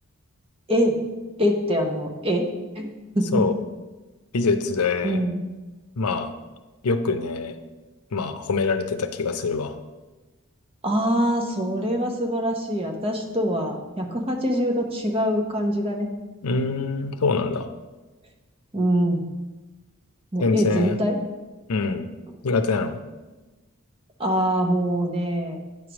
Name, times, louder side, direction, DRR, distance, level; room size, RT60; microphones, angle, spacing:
voice 1, 0.7-1.0 1.4-2.5 2.8-2.9 3.2-3.4 5.0-5.4 10.8-16.1 18.7-19.3 20.3-21.2 24.2-25.6, equal, 25° right, 2 dB, 0.8 m, -24 dB
voice 2, 4.3-5.2 6.0-6.3 6.8-7.5 8.1-9.8 16.4-17.7 20.4-21.0 21.7-22.1 22.4-23.0, left 4 dB, 90° left, 9 dB, 0.6 m, -24 dB
8.9 x 3.2 x 6.0 m, 1.2 s
head